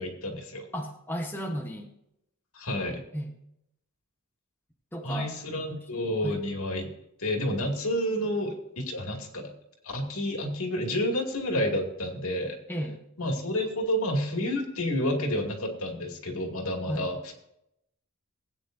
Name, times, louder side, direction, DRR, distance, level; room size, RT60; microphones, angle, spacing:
voice 1, 0.0-0.7 2.5-3.0 5.0-6.9 7.2-9.5 9.8-12.6 13.2-17.3, left 1 dB, 70° left, 2 dB, 2.4 m, -30 dB
voice 2, 0.7-1.9 3.1-3.3 4.9-5.7 6.2-6.4 12.7-13.0 16.8-17.1, equal, 10° left, 1 dB, 1.0 m, -34 dB
18.5 x 9.2 x 2.7 m, 0.80 s
head